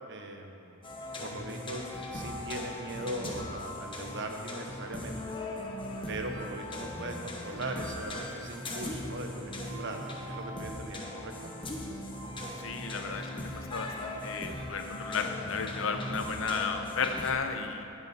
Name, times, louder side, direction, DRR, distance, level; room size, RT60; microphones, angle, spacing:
voice 1, 0.1-0.8 1.2-1.8 2.1-5.3 6.1-11.5, right 2 dB, 60° right, 4 dB, 1.1 m, -39 dB
sound 1, 0.8-17.3, left 1 dB, 25° left, 1.1 m, -39 dB
voice 2, 12.6-17.8, left 5 dB, 70° left, 6 dB, 0.8 m, -33 dB
16.5 x 7.2 x 4.3 m, 2.6 s
head